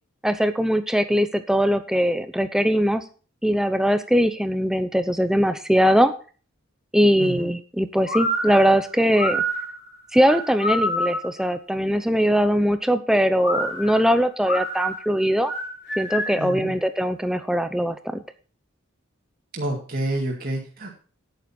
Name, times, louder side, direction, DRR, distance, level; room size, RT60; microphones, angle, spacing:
voice 1, 0.2-3.0 3.4-6.1 6.9-9.4 10.1-15.5 16.0-18.2, equal, 5° right, 10 dB, 0.7 m, -21 dB
sound 1, 8.1-11.4 13.4-16.5, equal, 50° left, 3.5 m, -27 dB
voice 2, 16.4-16.8 19.5-20.9, right 1 dB, 45° right, -2 dB, 2.1 m, -28 dB
9.9 x 9.7 x 4.3 m, 0.38 s
head